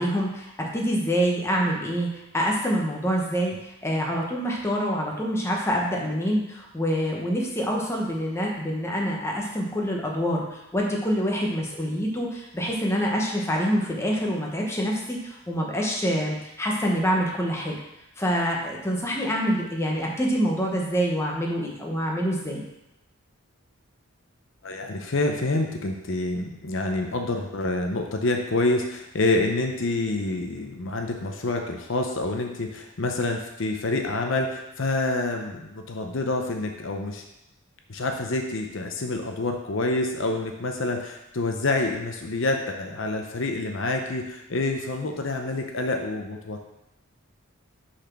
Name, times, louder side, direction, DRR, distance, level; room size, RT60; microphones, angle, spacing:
voice 1, 0.0-2.1 2.3-3.5 3.8-17.8 18.2-22.6, equal, 10° left, -2 dB, 0.9 m, -26 dB
voice 2, 24.6-37.2 37.9-46.7, left 2 dB, 60° left, 3 dB, 0.7 m, -27 dB
6.1 x 4.2 x 5.9 m, 0.90 s
head